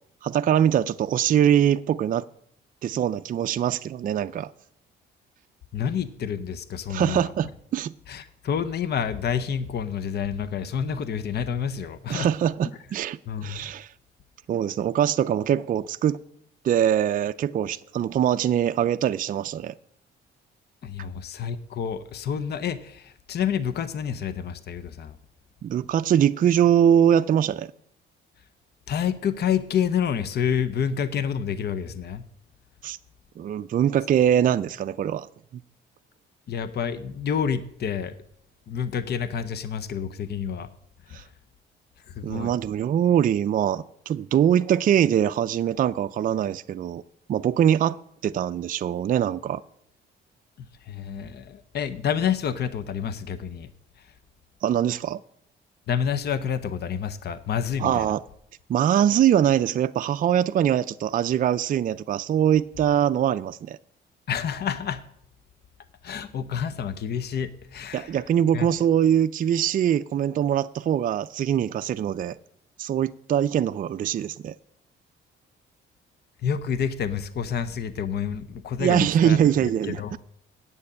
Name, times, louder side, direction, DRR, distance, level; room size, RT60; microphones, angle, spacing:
voice 1, 0.2-2.3 2.8-4.5 6.9-7.9 12.1-13.9 14.5-16.2 16.6-19.7 25.6-27.7 32.8-33.0 33.4-35.3 41.1-41.2 42.2-47.0 47.3-48.0 48.2-49.6 54.6-55.2 57.8-58.2 58.7-63.8 67.9-72.4 72.8-74.5 78.8-80.2, right 9 dB, 45° right, 0.4 m, -23 dB
voice 2, 5.7-7.3 8.1-12.3 13.3-13.7 20.8-25.2 28.9-32.2 36.5-38.1 38.7-40.7 41.1-41.2 42.1-42.5 50.9-53.7 55.9-58.1 64.3-65.0 66.0-68.2 68.5-68.7 76.4-80.2, left 7 dB, 55° left, 0.7 m, -28 dB
8.6 x 6.6 x 8.4 m
cardioid pair, 90°, 20 cm